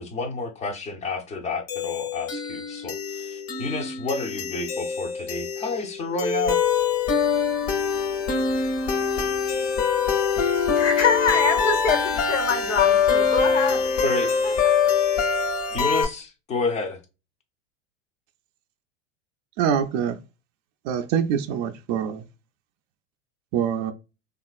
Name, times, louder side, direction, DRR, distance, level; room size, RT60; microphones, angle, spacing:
voice 1, 0.0-6.6 14.0-14.3 15.7-17.0, left 3 dB, 20° left, 0.5 m, -30 dB
sound 1, 1.7-16.1, left 6 dB, 55° left, 1.0 m, -24 dB
voice 2, 10.7-13.9 14.4-14.5, left 5 dB, 85° left, 1.0 m, -24 dB
voice 3, 19.6-20.2 20.9-22.2 23.5-23.9, right 8 dB, 40° right, 0.4 m, -24 dB
2.9 x 2.4 x 2.3 m
hypercardioid pair, 100°, 37 cm